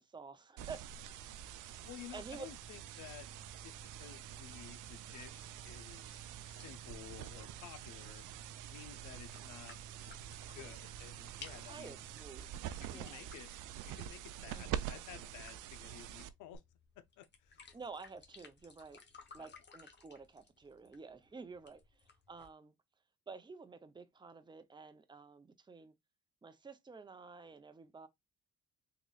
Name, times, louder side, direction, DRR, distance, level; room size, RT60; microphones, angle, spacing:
voice 1, 0.0-1.5 2.1-2.5 11.7-12.5 12.9-13.2 14.5-14.8 17.7-19.0 19.3-22.7 23.3-25.9 26.4-28.1, right 4 dB, 15° right, 0.6 m, -51 dB
sound 1, 0.6-12.2, right 6 dB, 50° right, 0.9 m, -56 dB
sound 2, 0.6-16.6, right 11 dB, 85° right, 0.5 m, -46 dB
voice 2, 1.8-3.3 3.6-8.2 8.7-9.8 10.5-12.0 12.8-13.5 13.8-16.6 17.0-17.7 19.4-19.6, left 11 dB, 80° left, 0.6 m, -53 dB
sound 3, 6.5-22.5, left 4 dB, 35° left, 1.0 m, -60 dB
3.8 x 3.0 x 2.3 m
cardioid pair, 90°, 30 cm